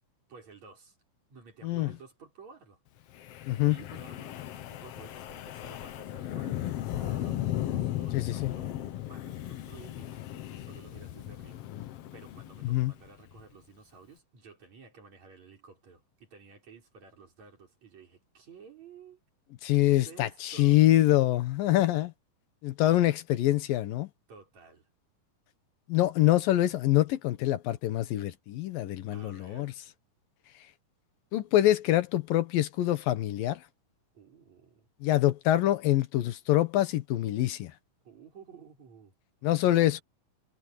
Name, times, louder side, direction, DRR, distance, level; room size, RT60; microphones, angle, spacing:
voice 1, 0.3-1.0 1.3-2.8 3.7-19.2 19.7-20.9 24.3-24.9 29.1-29.8 34.1-34.9 38.0-39.1, right 5 dB, 55° right, 6.8 m, -53 dB
Wind, 3.1-13.4, left 13 dB, 70° left, 1.5 m, -36 dB
voice 2, 3.5-3.8 8.1-8.5 11.7-11.9 12.6-12.9 19.6-22.1 22.6-24.1 25.9-29.7 31.3-33.6 35.0-37.7 39.4-40.0, left 14 dB, 85° left, 3.0 m, -25 dB
omnidirectional pair, 3.9 m